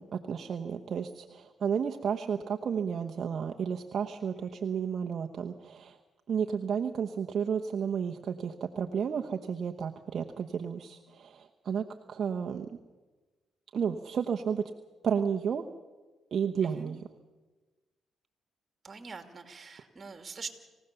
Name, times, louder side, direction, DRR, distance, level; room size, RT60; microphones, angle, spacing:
voice 1, 0.0-6.0 6.3-12.8 13.7-14.7 15.0-15.7 16.3-17.0, right 7 dB, 55° right, 3 dB, 1.0 m, -32 dB
voice 2, 4.4-4.8 16.6-16.9 18.8-20.5, right 4 dB, 35° right, 6 dB, 2.7 m, -44 dB
26.5 x 16.0 x 6.9 m, 1.2 s
cardioid pair, 90°, 0 cm